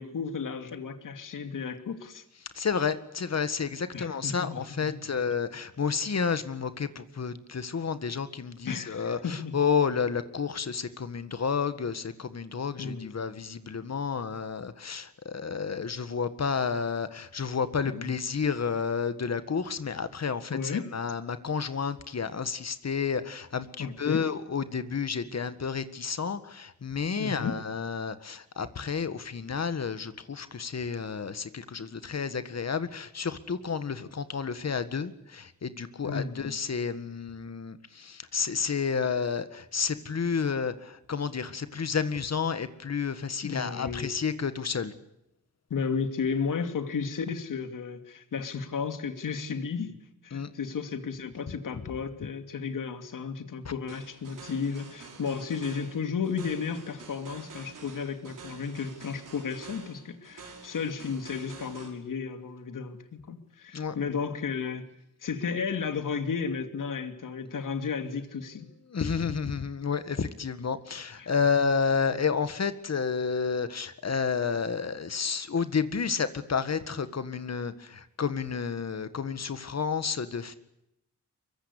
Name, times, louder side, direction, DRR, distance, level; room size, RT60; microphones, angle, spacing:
voice 1, 0.0-2.2 3.9-4.6 4.9-5.1 8.6-9.5 12.8-13.1 17.8-18.1 20.5-20.9 23.8-24.2 27.2-27.6 36.0-36.6 43.4-44.1 45.7-50.0 50.2-64.8 65.2-68.7 71.2-71.3, left 5 dB, 85° left, 2.6 m, -33 dB
voice 2, 2.5-44.9 50.3-50.5 53.6-53.7 63.7-64.0 68.9-80.6, left 6 dB, 55° left, 1.8 m, -30 dB
sound 1, 53.9-61.9, right 4 dB, 85° right, 6.3 m, -48 dB
23.5 x 23.5 x 8.4 m
wide cardioid pair, 85°, 31 cm